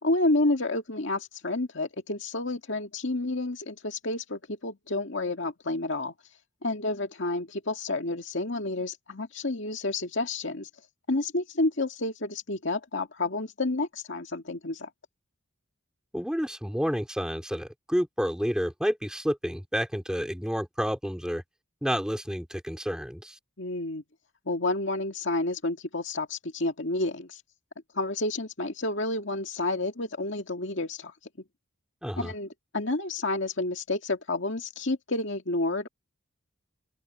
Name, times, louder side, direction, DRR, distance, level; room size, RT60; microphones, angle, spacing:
voice 1, 0.0-6.1 6.6-10.7 11.1-14.9 23.6-24.0 24.5-27.4 27.9-31.1 32.2-32.5 32.7-35.9, left 2 dB, 60° left, 2.2 m, -30 dB
voice 2, 16.1-21.4 21.8-23.4 32.0-32.3, equal, 5° right, 4.2 m, -30 dB
open air
head